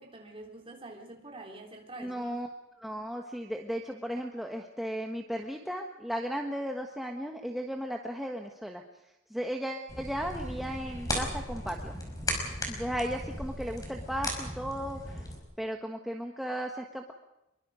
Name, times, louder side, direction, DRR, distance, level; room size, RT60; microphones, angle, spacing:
voice 1, 0.0-2.4, right 2 dB, 25° right, 3.7 m, -46 dB
voice 2, 2.0-2.5 2.8-8.8 9.3-11.9 12.7-15.2 15.6-17.1, equal, ahead, 1.3 m, -35 dB
sound 1, 9.9-15.4, left 1 dB, 15° left, 5.2 m, -36 dB
25.5 x 23.0 x 5.1 m
head